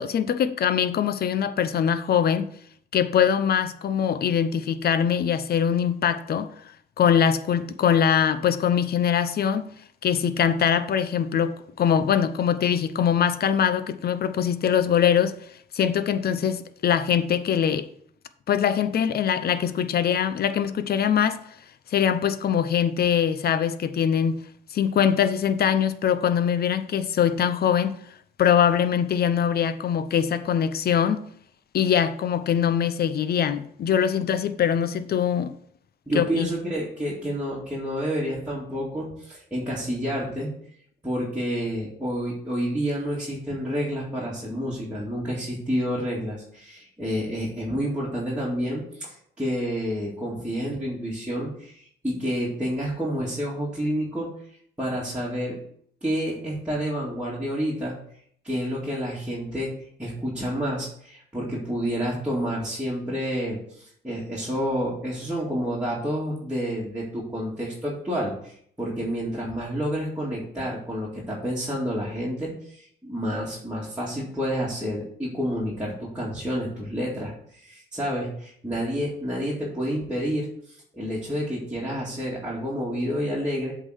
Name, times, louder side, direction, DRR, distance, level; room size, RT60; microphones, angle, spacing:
voice 1, 0.0-2.5 2.9-6.5 7.0-9.7 10.0-15.4 15.7-17.9 18.5-21.4 21.9-24.4 24.7-28.0 28.4-31.2 31.7-35.5 36.1-36.5, left 8 dB, 50° left, 0.7 m, -22 dB
voice 2, 36.1-40.5 41.0-54.3 54.8-55.6 56.0-57.9 58.4-59.7 60.0-83.7, equal, 5° right, 2.2 m, -29 dB
7.9 x 3.9 x 6.4 m
cardioid pair, 90°, 20 cm